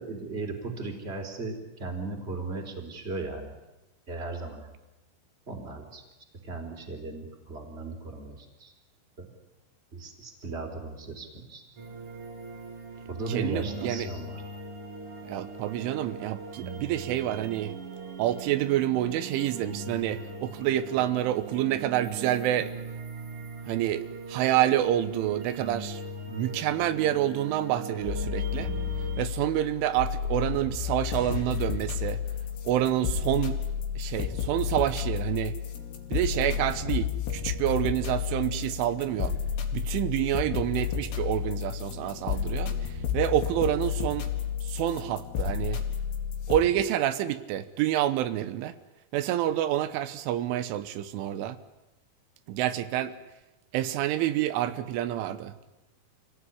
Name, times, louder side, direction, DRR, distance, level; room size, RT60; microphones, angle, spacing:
voice 1, 0.0-3.5 4.1-4.7 5.5-6.0 6.4-8.7 9.2-9.3 9.9-11.6 13.1-14.4, right 3 dB, 15° right, 3 dB, 3.4 m, -36 dB
sound 1, 11.8-29.2, right 3 dB, 45° right, 1.9 m, -40 dB
voice 2, 13.3-14.1 15.3-17.8 18.2-22.7 23.7-26.0 26.3-28.7 29.2-32.2 32.7-33.6 34.0-35.6 36.1-39.4 39.7-44.3 44.6-45.8 46.5-48.7 49.1-51.6 52.5-53.2 53.7-55.5, right 12 dB, 85° right, 12 dB, 3.5 m, -28 dB
sound 2, 28.0-46.6, left 8 dB, 60° left, 4.3 m, -31 dB
27.0 x 17.5 x 9.9 m, 0.99 s
omnidirectional pair, 5.5 m